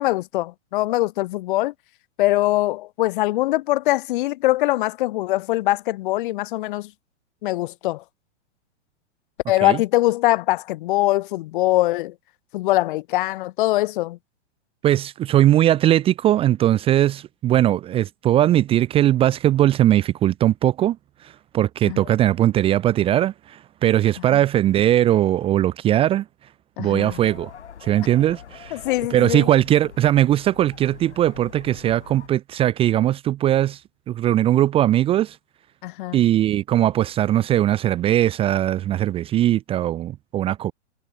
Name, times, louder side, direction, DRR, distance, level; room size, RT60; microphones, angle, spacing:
voice 1, 0.0-1.7 2.2-6.9 7.4-8.0 9.5-12.1 12.5-14.2 21.8-22.0 24.3-24.4 26.8-27.2 28.7-29.5 35.8-36.2, left 17 dB, 45° left, 0.8 m, -22 dB
voice 2, 14.8-21.0 21.2-26.3 26.8-27.5 27.8-28.8 29.1-33.8 34.1-35.4 36.1-40.7, right 12 dB, 15° right, 0.5 m, -19 dB
sound 1, 27.0-32.3, left 8 dB, 75° left, 6.4 m, -44 dB
hypercardioid pair, 120°, 35 cm